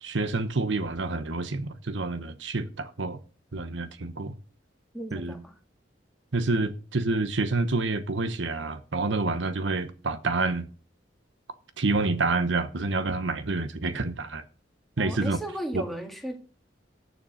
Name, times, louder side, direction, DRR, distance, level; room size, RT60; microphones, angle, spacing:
voice 1, 0.0-3.2 3.5-4.3 5.1-5.3 6.3-10.7 11.8-14.4 15.0-15.4 15.7-15.8, right 3 dB, 90° right, 1.0 m, -28 dB
voice 2, 4.9-5.5 15.0-16.4, right 1 dB, ahead, 1.9 m, -35 dB
8.4 x 7.1 x 6.4 m
head